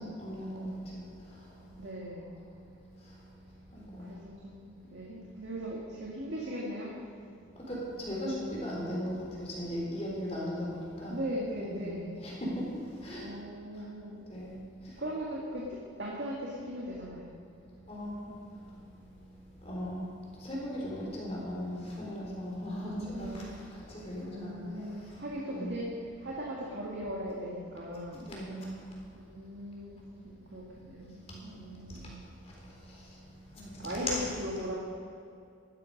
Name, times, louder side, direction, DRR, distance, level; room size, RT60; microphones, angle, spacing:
voice 1, 0.0-1.8 2.4-2.5 2.9-3.2 3.7-4.1 7.6-11.3 11.5-13.3 14.3-15.0 17.9-18.8 19.6-25.9 26.1-26.2 28.1-28.9 31.3-32.2 32.4-34.2, equal, 35° left, -4 dB, 3.9 m, -39 dB
voice 2, 1.8-2.3 4.0-6.9 11.1-12.2 13.2-14.2 15.0-17.3 22.7-23.6 24.0-25.9 26.2-28.3 29.1-32.2 33.8-34.8, equal, 65° right, -4 dB, 2.0 m, -39 dB
14.5 x 12.5 x 5.3 m, 2.5 s
head